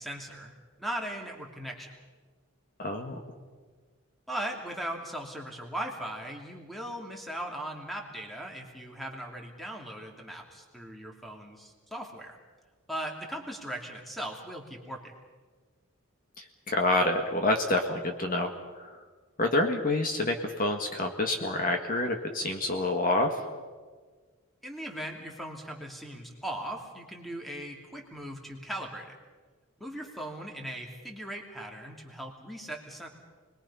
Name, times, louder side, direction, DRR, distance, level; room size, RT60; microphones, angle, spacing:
voice 1, 0.0-1.9 4.3-12.4 12.9-15.2 24.6-29.1 29.8-33.1, right 1 dB, ahead, 1 dB, 2.8 m, -39 dB
voice 2, 2.8-3.4 16.4-19.0 19.4-23.5, left 2 dB, 40° left, 3 dB, 1.8 m, -28 dB
29.5 x 21.5 x 5.6 m, 1.5 s
head